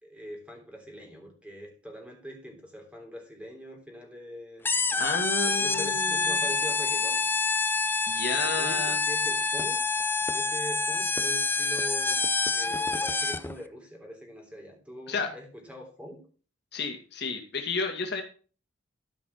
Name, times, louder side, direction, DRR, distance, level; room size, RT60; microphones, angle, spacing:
voice 1, 0.0-4.6 5.4-7.2 8.2-9.8 10.3-16.2, equal, 5° right, 1 dB, 3.2 m, -42 dB
sound 1, 4.6-13.6, left 3 dB, 10° left, 0.5 m, -27 dB
voice 2, 5.0-6.4 8.1-9.0 15.1-15.3 16.7-18.2, left 4 dB, 55° left, 3 dB, 2.0 m, -31 dB
13.5 x 5.3 x 5.6 m, 0.37 s
head